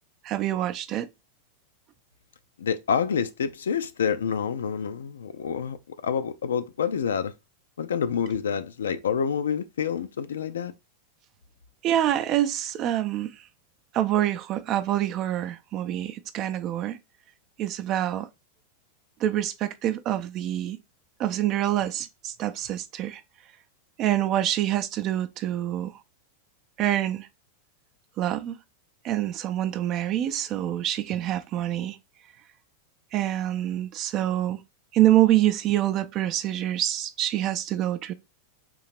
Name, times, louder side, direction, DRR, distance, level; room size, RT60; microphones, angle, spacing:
voice 1, 0.2-1.1 11.8-13.4 13.9-17.0 17.6-18.3 19.2-20.8 21.2-23.2 24.0-25.9 26.8-27.3 28.2-28.6 29.0-32.0 33.1-34.6 34.9-38.1, right 12 dB, 35° right, 0.5 m, -26 dB
voice 2, 2.6-7.3 7.8-10.7, left 7 dB, 65° left, 0.4 m, -28 dB
3.8 x 2.8 x 4.3 m
figure-of-eight pair, 90°, 0 cm